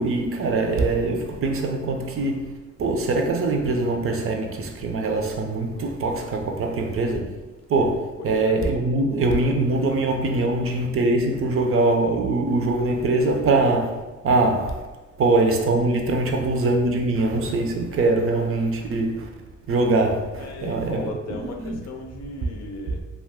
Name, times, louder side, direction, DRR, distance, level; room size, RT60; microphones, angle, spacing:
voice 1, 0.0-2.5 2.8-7.4 7.7-14.8 15.2-19.3 19.7-21.8, right 2 dB, 45° right, 0.5 m, -23 dB
voice 2, 8.2-8.6 20.4-23.0, left 3 dB, 60° left, 0.5 m, -36 dB
2.4 x 2.3 x 3.4 m
cardioid pair, 90°, 30 cm